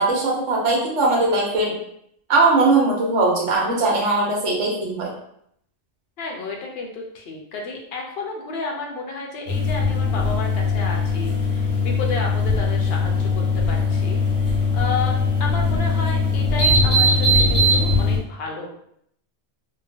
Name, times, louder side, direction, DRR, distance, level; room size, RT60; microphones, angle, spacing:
voice 1, 0.0-1.7 2.3-5.1, right 3 dB, 70° right, -2 dB, 1.1 m, -20 dB
voice 2, 6.2-18.7, left 3 dB, 60° left, 0 dB, 0.8 m, -32 dB
sound 1, 9.5-18.2, left 2 dB, 90° left, 1.2 m, -20 dB
2.8 x 2.2 x 2.7 m, 0.71 s
omnidirectional pair, 1.3 m